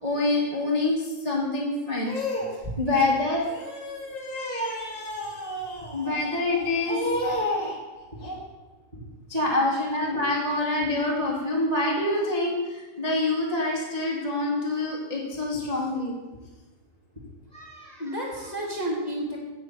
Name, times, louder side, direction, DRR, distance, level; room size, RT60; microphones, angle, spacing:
voice 1, 0.0-7.8 8.1-8.4 8.9-9.0 9.3-16.1, left 2 dB, 25° right, -4 dB, 0.7 m, -27 dB
voice 2, 17.5-19.4, right 1 dB, 15° left, -3 dB, 1.5 m, -32 dB
16.0 x 6.2 x 6.9 m, 1.2 s
omnidirectional pair, 4.6 m